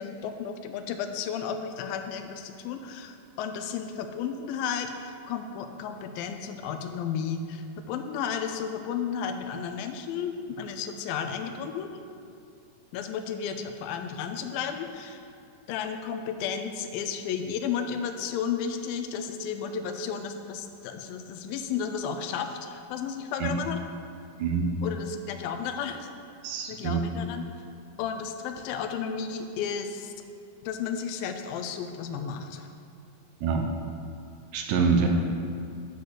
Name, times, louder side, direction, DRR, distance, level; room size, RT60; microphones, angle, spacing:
voice 1, 0.0-11.9 12.9-15.3 15.7-23.8 24.8-26.1 26.7-27.4 28.0-30.1 30.6-32.7, left 7 dB, 90° left, 6 dB, 2.4 m, -33 dB
voice 2, 24.4-24.7 26.4-27.0 33.4-33.7 34.5-35.1, right 5 dB, 80° right, 2 dB, 2.1 m, -25 dB
8.4 x 4.0 x 6.5 m, 2.4 s
omnidirectional pair, 4.0 m